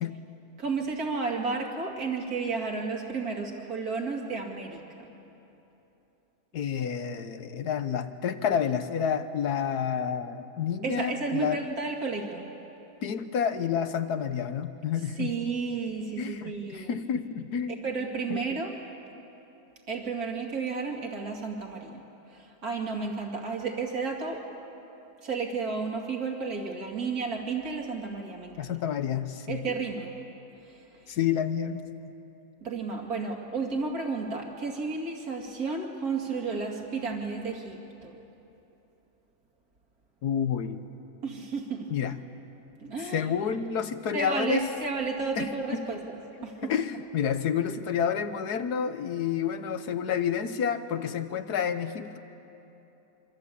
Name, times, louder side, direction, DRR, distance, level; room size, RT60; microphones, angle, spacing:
voice 1, 0.6-4.8 10.8-12.5 15.2-16.9 17.8-18.8 19.9-22.0 22.3-24.5 25.2-28.7 29.5-30.1 30.7-30.8 32.6-38.2 41.2-41.9 42.8-43.3 44.1-46.7, right 4 dB, 65° right, 1 dB, 2.9 m, -32 dB
voice 2, 6.5-11.6 13.0-15.3 16.2-17.8 18.3-18.4 28.6-29.7 31.1-31.8 40.2-40.8 41.9-42.2 43.1-44.7 45.4-45.9 46.6-52.2, left 8 dB, 75° left, 10 dB, 1.6 m, -29 dB
26.5 x 25.0 x 8.5 m, 3.0 s
omnidirectional pair, 1.7 m